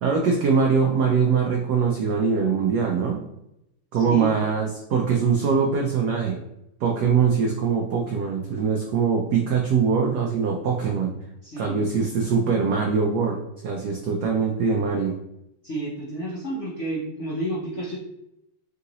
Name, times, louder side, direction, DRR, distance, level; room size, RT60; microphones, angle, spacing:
voice 1, 0.0-3.2 3.9-6.4 6.8-11.1 11.6-15.1, right 5 dB, 90° right, 1 dB, 0.8 m, -22 dB
voice 2, 3.9-4.3 11.4-11.9 15.6-18.0, right 1 dB, 85° left, -4 dB, 0.6 m, -31 dB
3.7 x 2.9 x 3.9 m, 0.84 s
omnidirectional pair, 2.4 m